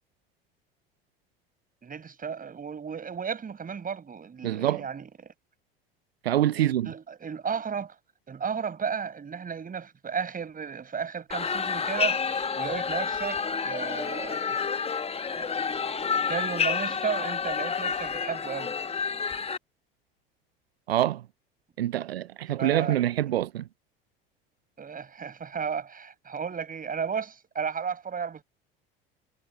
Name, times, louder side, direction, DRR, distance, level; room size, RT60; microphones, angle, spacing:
voice 1, 1.8-5.3 6.6-8.0 8.3-14.6 15.3-15.5 16.0-18.8 22.6-23.0 24.8-28.4, right 6 dB, 30° right, 7.0 m, -34 dB
voice 2, 4.4-4.8 6.2-6.9 20.9-21.2 21.8-23.6, right 12 dB, 85° right, 0.6 m, -25 dB
sound 1, 11.3-19.6, left 6 dB, 20° left, 1.3 m, -29 dB
hypercardioid pair, 70°, 30 cm